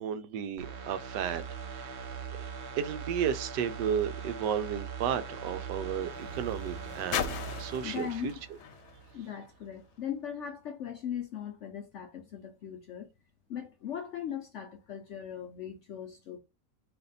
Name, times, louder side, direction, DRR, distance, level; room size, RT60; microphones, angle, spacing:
voice 1, 0.0-2.0 2.3-2.4 2.8-8.3, right 8 dB, 85° right, 1.2 m, -33 dB
sound 1, 0.6-9.2 9.6-9.7, right 6 dB, 60° right, 0.7 m, -41 dB
sound 2, 5.4-10.1 10.9-11.0, left 9 dB, 85° left, 1.2 m, -41 dB
voice 2, 7.8-8.3 9.1-13.1 13.5-16.4, left 9 dB, 70° left, 0.7 m, -39 dB
4.3 x 2.9 x 3.9 m
omnidirectional pair, 1.8 m